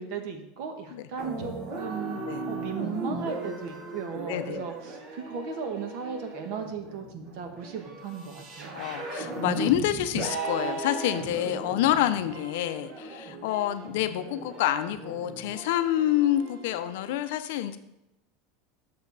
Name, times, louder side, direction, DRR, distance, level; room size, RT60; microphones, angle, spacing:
voice 1, 0.0-2.2 2.5-8.9, right 6 dB, 55° right, 5 dB, 1.2 m, -36 dB
sound 1, 1.2-17.1, right 3 dB, 35° right, 1.0 m, -37 dB
voice 2, 4.3-4.6 8.7-17.8, left 12 dB, 65° left, 10 dB, 0.5 m, -27 dB
7.3 x 6.7 x 4.0 m, 0.89 s
supercardioid pair, 165°, 0 cm